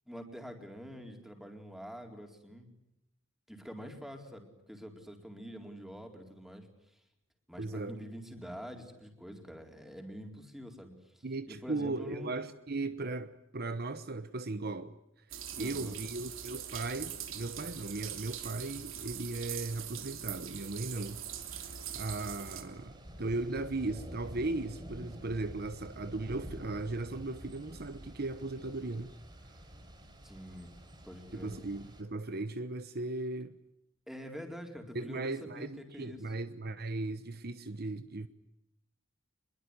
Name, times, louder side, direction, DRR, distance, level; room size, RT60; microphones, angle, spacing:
voice 1, 0.1-2.7 3.5-6.7 7.5-12.3 15.6-16.0 30.2-30.7 31.0-31.5 34.1-36.2, equal, ahead, 4.3 m, -46 dB
voice 2, 7.6-8.0 11.2-15.0 15.5-21.2 21.6-29.1 31.3-33.5 34.9-38.3, right 2 dB, 50° right, 1.1 m, -37 dB
sound 1, 15.3-22.6, right 9 dB, 90° right, 3.1 m, -42 dB
Thunder / Rain, 20.9-32.0, equal, 25° right, 5.6 m, -49 dB
26.0 x 22.5 x 9.9 m
head